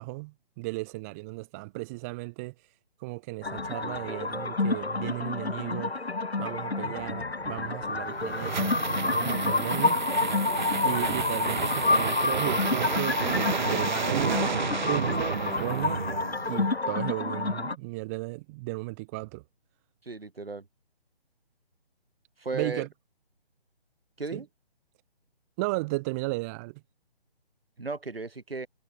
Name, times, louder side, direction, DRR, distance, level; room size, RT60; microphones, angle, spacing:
voice 1, 0.0-2.5 3.0-5.9 6.4-10.0 10.8-14.4 14.9-16.1 16.5-19.4 22.5-22.9 24.3-24.4 25.6-26.8, right 25 dB, 15° right, 1.6 m, -35 dB
sound 1, 3.4-17.8, left 3 dB, 80° left, 1.5 m, -29 dB
sound 2, 7.8-16.7, right 6 dB, 50° right, 0.6 m, -31 dB
voice 2, 20.0-20.7 22.4-22.9 24.2-24.5 27.8-28.7, right 3 dB, 65° right, 5.4 m, -35 dB
figure-of-eight pair, 145°, 31 cm